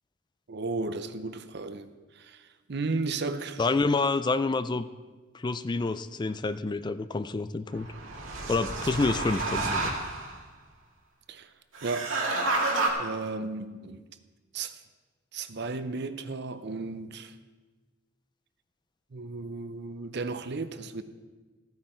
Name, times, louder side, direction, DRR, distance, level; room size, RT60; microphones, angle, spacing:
voice 1, 0.5-3.6 11.3-11.5 11.8-12.2 13.0-14.0 14.5-14.8 15.3-17.3 19.1-21.0, right 3 dB, 60° right, 0.7 m, -34 dB
voice 2, 3.6-4.9 5.3-7.9 8.5-9.9, left 3 dB, 20° left, 0.4 m, -28 dB
sound 1, 7.7-10.4 11.7-12.9, right 2 dB, 80° right, 2.0 m, -30 dB
14.5 x 9.5 x 4.5 m
head